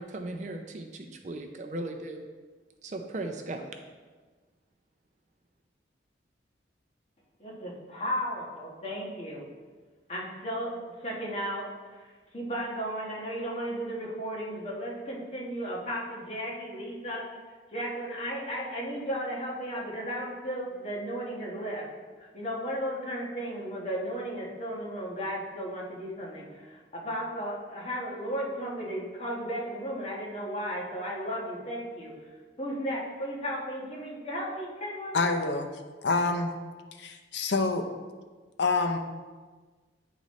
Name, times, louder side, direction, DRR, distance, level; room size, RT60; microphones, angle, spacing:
voice 1, 0.0-2.2 2.8-3.7, right 2 dB, 40° right, 4 dB, 0.4 m, -37 dB
voice 2, 7.4-9.4 10.1-10.7 11.0-11.7 12.0-12.1 12.3-17.2 17.7-21.8 22.2-32.1 32.6-35.4, equal, 35° left, -4 dB, 1.3 m, -34 dB
voice 3, 35.1-35.7 36.0-36.5 37.0-37.9 38.6-39.0, left 3 dB, 70° left, 5 dB, 0.6 m, -26 dB
9.2 x 3.9 x 3.1 m, 1.4 s
head